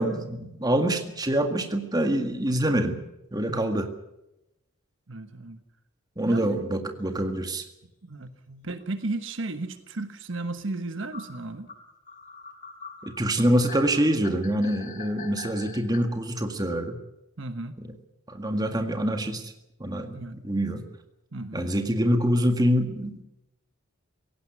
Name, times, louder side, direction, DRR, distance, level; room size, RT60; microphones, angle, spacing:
voice 1, 0.0-3.0 3.3-3.9 6.2-7.6 13.0-17.0 18.3-19.5 19.8-20.9 21.5-23.2, right 1 dB, 20° right, 6 dB, 1.8 m, -25 dB
voice 2, 3.5-3.8 5.1-5.6 6.2-6.6 8.0-11.7 17.4-17.8 20.1-20.4 21.3-21.6, right 2 dB, 65° right, 9 dB, 1.3 m, -34 dB
sound 1, 8.8-8.9 10.3-10.4 11.1-16.0, left 5 dB, 40° left, 2.4 m, -43 dB
17.5 x 17.0 x 9.6 m, 0.90 s
head